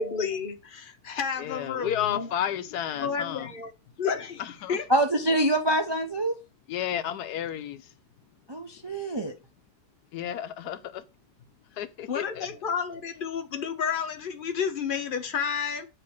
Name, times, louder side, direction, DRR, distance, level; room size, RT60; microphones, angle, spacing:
voice 1, 0.0-2.3 3.0-3.7 4.0-4.4 4.7-4.9 12.1-15.9, left 6 dB, 40° left, 0.8 m, -31 dB
voice 2, 1.4-3.5 4.4-4.8 6.7-7.9 10.1-11.0 11.8-12.5, left 10 dB, 85° left, 1.2 m, -32 dB
voice 3, 4.9-6.4 8.5-9.3, right 1 dB, 35° right, 0.4 m, -25 dB
7.9 x 3.0 x 5.9 m
omnidirectional pair, 1.7 m